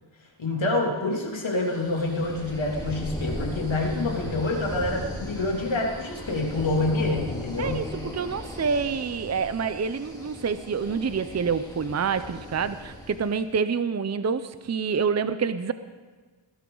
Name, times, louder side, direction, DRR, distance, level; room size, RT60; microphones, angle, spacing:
voice 1, 0.4-7.8, left 2 dB, 75° left, -1 dB, 2.9 m, -27 dB
sound 1, 1.6-13.4, left 1 dB, 10° left, 3.3 m, -37 dB
voice 2, 7.6-15.7, right 6 dB, 35° right, 12 dB, 0.6 m, -27 dB
20.5 x 12.5 x 3.9 m, 1.4 s
wide cardioid pair, 60°, 47 cm